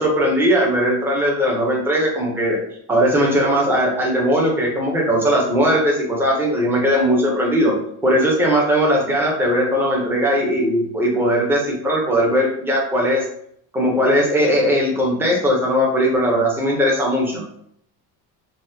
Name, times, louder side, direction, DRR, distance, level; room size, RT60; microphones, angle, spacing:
voice 1, 0.0-2.6 2.9-7.7 8.0-13.3 13.7-17.4, equal, 5° right, -2 dB, 0.4 m, -19 dB
4.1 x 2.1 x 2.5 m, 0.68 s
cardioid pair, 170°, 42 cm